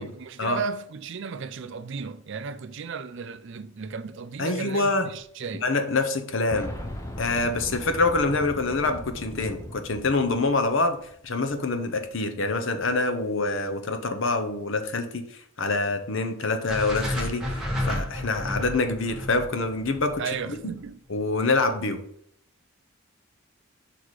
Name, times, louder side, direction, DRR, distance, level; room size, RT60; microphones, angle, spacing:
voice 1, 0.0-5.7 20.2-21.0, right 5 dB, 55° right, 0.4 m, -35 dB
voice 2, 4.4-5.1 5.6-6.7 7.2-11.0 11.2-20.2 20.5-20.6 21.1-22.0, left 3 dB, 55° left, 0.8 m, -26 dB
Boom, 6.5-11.2 11.5-11.6 12.7-12.8, left 1 dB, 15° left, 0.6 m, -38 dB
sound 1, 16.7-20.9, left 1 dB, ahead, 1.3 m, -31 dB
5.8 x 4.2 x 4.7 m
head